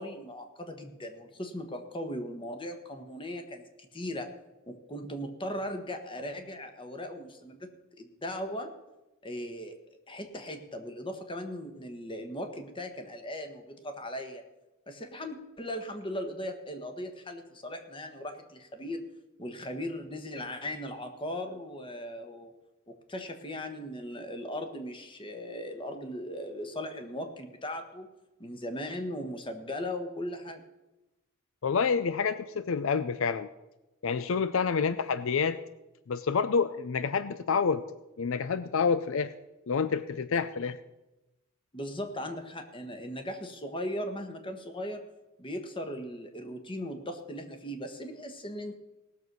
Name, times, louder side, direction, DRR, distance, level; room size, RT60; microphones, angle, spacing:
voice 1, 0.0-4.3 4.7-7.7 8.0-8.7 9.2-9.8 10.1-14.4 14.9-19.0 19.4-22.5 22.9-28.1 28.4-30.6 34.8-35.0 41.7-45.0 45.4-48.8, left 1 dB, 25° left, 6 dB, 1.3 m, -38 dB
voice 2, 31.6-33.5 34.0-35.6 36.1-37.8 38.2-39.3 39.7-40.8, left 5 dB, 65° left, 13 dB, 0.5 m, -28 dB
18.0 x 6.8 x 6.1 m, 1.0 s
head